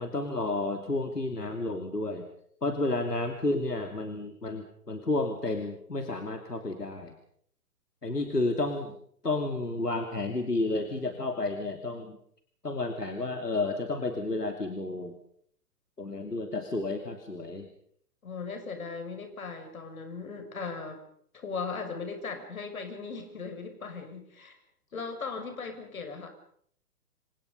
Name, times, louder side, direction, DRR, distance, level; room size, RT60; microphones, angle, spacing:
voice 1, 0.0-2.3 2.6-7.1 8.0-9.0 9.2-12.2 12.6-15.2 16.0-17.7, left 2 dB, 85° left, 5 dB, 3.1 m, -31 dB
voice 2, 18.2-21.0 21.3-24.6 24.9-26.3, left 4 dB, 60° left, 6 dB, 6.8 m, -38 dB
29.0 x 25.0 x 5.5 m, 0.64 s
figure-of-eight pair, 125°, 46 cm